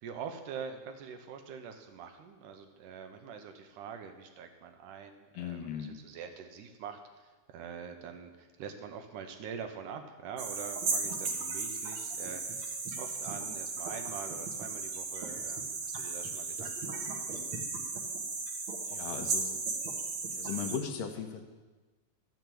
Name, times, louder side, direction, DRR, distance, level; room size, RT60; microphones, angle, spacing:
voice 1, 0.0-17.2, right 7 dB, 75° right, 6 dB, 2.3 m, -45 dB
voice 2, 5.3-6.0 18.9-19.6 20.3-21.4, left 7 dB, 80° left, 5 dB, 2.7 m, -38 dB
sound 1, 10.4-20.8, right 4 dB, 50° right, 1.8 m, -36 dB
12.5 x 6.9 x 7.6 m, 1.2 s
omnidirectional pair, 4.0 m